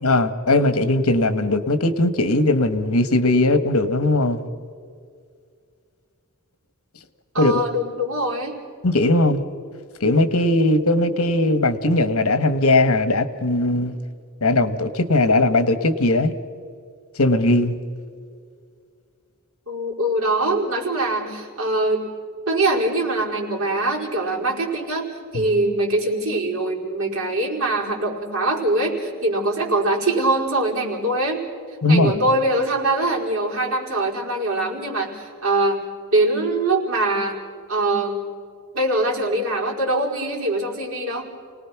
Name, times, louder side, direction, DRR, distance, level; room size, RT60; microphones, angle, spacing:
voice 1, 0.0-4.4 7.4-7.6 8.8-9.4 10.0-13.9 14.4-16.3 17.2-17.8 25.3-25.4 31.8-32.1, left 2 dB, 75° left, 11 dB, 1.4 m, -19 dB
voice 2, 7.3-8.5 19.7-22.0 22.5-25.1 25.3-31.4 31.9-35.8 36.1-37.4 37.7-38.2 38.7-41.3, right 2 dB, 70° right, -2 dB, 4.9 m, -23 dB
29.0 x 19.0 x 6.0 m, 2.2 s
head